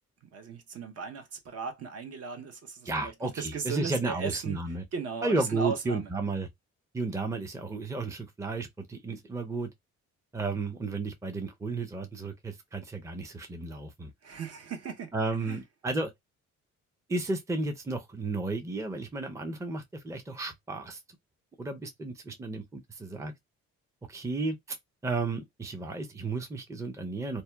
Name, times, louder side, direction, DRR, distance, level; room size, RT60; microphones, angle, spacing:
voice 1, 0.2-4.6 4.9-6.1 14.2-15.1 15.4-15.6, right 5 dB, 55° right, 0.8 m, -37 dB
voice 2, 2.9-4.8 5.2-6.5 6.9-9.7 10.3-14.1 15.1-16.1 17.1-21.0 21.6-23.3 24.1-24.8 25.0-27.4, right 3 dB, 10° right, 0.5 m, -33 dB
2.7 x 2.1 x 2.2 m
cardioid pair, 90°, 30 cm